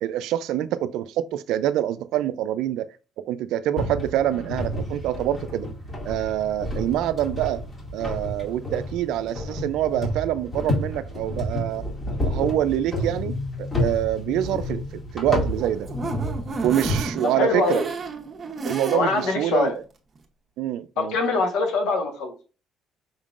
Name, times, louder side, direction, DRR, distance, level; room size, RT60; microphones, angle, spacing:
voice 1, 0.0-2.9 3.2-5.7 6.1-7.6 7.9-11.9 12.2-14.8 15.1-15.9 16.6-17.8 18.6-19.7 20.6-21.2, right 12 dB, 85° right, 0.4 m, -26 dB
sound 1, 3.8-17.0, left 1 dB, 35° left, 2.0 m, -30 dB
sound 2, 15.4-19.3 19.7-19.8 20.2-20.3, right 3 dB, 40° right, 0.9 m, -32 dB
voice 2, 17.2-17.9 18.9-19.7 21.0-22.3, left 3 dB, 85° left, 1.2 m, -23 dB
5.4 x 3.6 x 2.5 m
cardioid pair, 85°, 0 cm